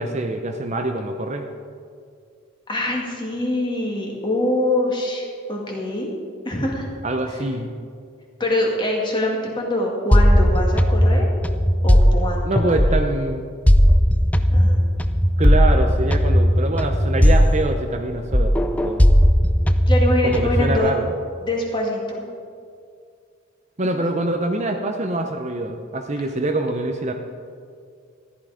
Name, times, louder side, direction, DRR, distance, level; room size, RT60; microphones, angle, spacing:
voice 1, 0.0-1.5 7.0-7.7 12.4-13.4 15.4-18.5 18.8-19.1 20.2-21.1 23.8-27.1, right 2 dB, 35° right, 5 dB, 0.7 m, -24 dB
voice 2, 2.7-6.1 6.4-6.9 7.3-7.5 8.4-11.3 11.8-12.8 14.5-14.8 19.9-20.9 21.4-22.2, left 1 dB, 20° left, -1 dB, 2.2 m, -24 dB
sound 1, 10.1-13.2 13.7-18.1 18.3-20.8, equal, 5° left, 0.4 m, -17 dB
14.0 x 11.5 x 5.1 m, 2.2 s
head